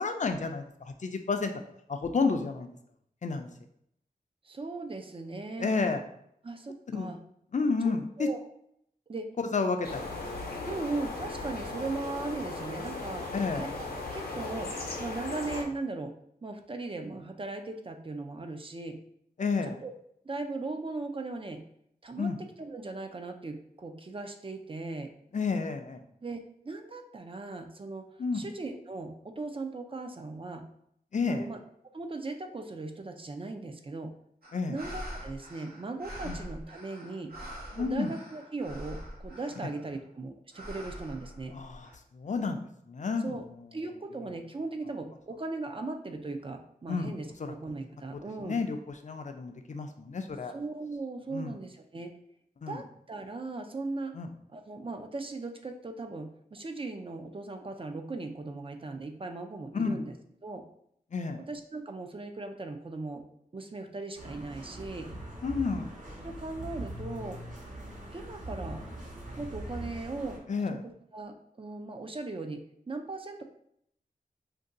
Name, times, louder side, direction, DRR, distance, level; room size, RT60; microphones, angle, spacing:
voice 1, 0.0-1.5 1.9-2.7 3.2-3.5 5.6-6.0 6.9-7.2 7.5-8.3 9.4-10.1 13.3-13.7 19.4-19.8 22.2-22.4 25.3-26.0 28.2-28.5 31.1-31.5 34.5-34.8 36.2-36.4 37.7-38.1 39.6-39.7 41.5-42.6 42.9-43.3 44.2-44.3 46.9-47.1 47.4-47.5 48.4-50.5 51.3-51.6 52.6-52.8 54.1-54.3 59.7-60.0 61.1-61.4 65.4-66.0 70.5-70.8, left 4 dB, 50° left, 6 dB, 0.4 m, -31 dB
voice 2, 4.4-5.7 6.4-7.2 8.2-8.4 9.1-9.3 10.7-13.3 13.6-13.7 14.1-14.7 15.0-16.1 16.4-19.0 19.8-19.9 20.2-21.6 22.0-25.1 26.2-28.1 28.3-30.6 31.3-31.6 31.9-34.1 34.7-37.3 37.7-41.5 43.2-43.4 43.7-48.6 50.5-52.1 52.7-54.2 54.5-60.2 60.4-60.6 61.5-63.3 63.5-65.1 66.2-67.4 68.1-68.8 69.4-70.4 70.8-73.4, right 3 dB, 35° right, 5 dB, 0.4 m, -38 dB
sound 1, 9.8-15.6, left 3 dB, 80° left, 0.7 m, -37 dB
sound 2, 34.4-40.0 40.5-41.9, equal, 75° right, 0.8 m, -44 dB
sound 3, 64.1-70.4, right 1 dB, 50° right, 1.0 m, -42 dB
2.6 x 2.2 x 3.7 m, 0.72 s
wide cardioid pair, 55°, 16 cm